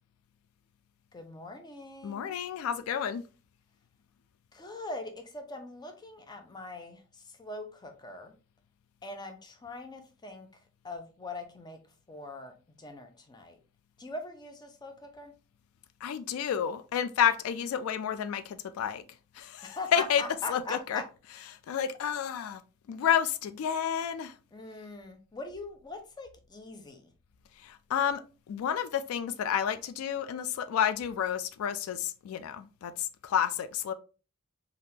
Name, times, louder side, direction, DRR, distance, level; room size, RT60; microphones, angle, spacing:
voice 1, 1.1-2.4 4.5-8.3 9.0-10.5 10.8-11.8 12.1-13.6 14.0-15.3 19.6-21.0 24.5-27.1, left 2 dB, 20° left, 0.5 m, -42 dB
voice 2, 2.0-3.2 16.0-19.0 19.3-20.2 20.5-21.0 21.7-22.6 22.9-24.3 27.6-28.2 28.5-33.9, left 8 dB, 85° left, 0.3 m, -30 dB
3.5 x 2.4 x 2.7 m
head